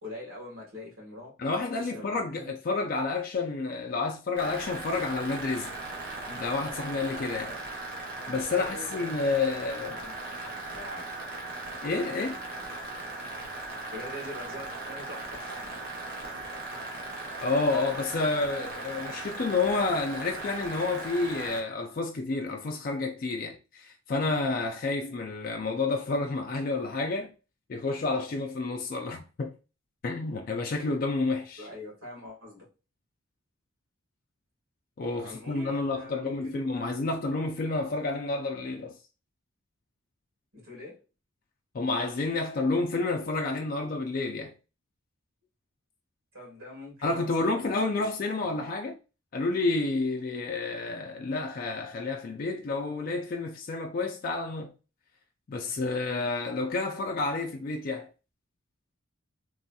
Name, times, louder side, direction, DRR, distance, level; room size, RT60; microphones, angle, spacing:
voice 1, 0.0-1.3 1.7-2.5 7.4-7.6 8.5-11.1 13.9-15.7 31.6-32.7 35.2-37.0 40.5-41.0 46.3-48.1 56.0-56.3, left 1 dB, 75° right, 1.6 m, -43 dB
voice 2, 1.4-5.7 6.3-7.5 8.3-10.0 11.8-12.4 17.4-27.3 27.7-29.5 30.0-31.6 35.0-38.9 41.7-44.5 47.0-49.0 49.3-54.7 55.5-58.1, left 3 dB, 40° left, 0.3 m, -30 dB
sound 1, 4.4-21.6, right 2 dB, 45° right, 0.8 m, -38 dB
3.0 x 2.7 x 2.2 m
head